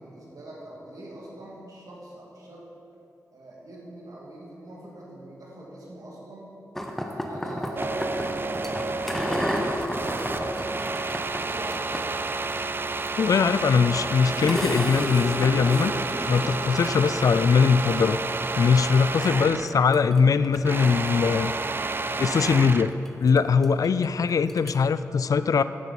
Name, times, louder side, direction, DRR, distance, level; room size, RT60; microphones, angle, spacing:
voice 1, 0.0-2.7 3.3-6.6 7.0-10.7 11.2-12.5, right 1 dB, 70° right, -4 dB, 2.2 m, -43 dB
sound 1, 6.8-25.0, equal, 5° left, 1.1 m, -34 dB
sound 2, 7.8-19.8 20.1-23.0, right 3 dB, 35° right, 0.4 m, -30 dB
voice 2, 13.2-15.9 16.3-18.2 18.6-21.5 22.2-22.9 23.2-25.6, left 5 dB, 65° left, 13 dB, 0.3 m, -21 dB
12.0 x 6.4 x 4.1 m, 2.8 s
cardioid pair, 45°, 6 cm